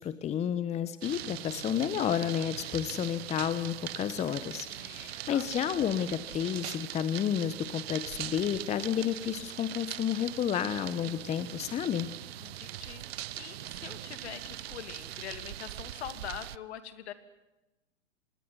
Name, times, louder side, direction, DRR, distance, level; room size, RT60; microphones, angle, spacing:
voice 1, 0.0-12.1, left 9 dB, 15° left, 14 dB, 1.1 m, -31 dB
sound 1, 1.0-16.6, right 14 dB, 55° right, 0.8 m, -41 dB
voice 2, 4.7-5.5 12.4-17.1, left 10 dB, 60° left, 11 dB, 2.9 m, -44 dB
26.5 x 20.0 x 9.7 m, 0.99 s
hypercardioid pair, 115°, 38 cm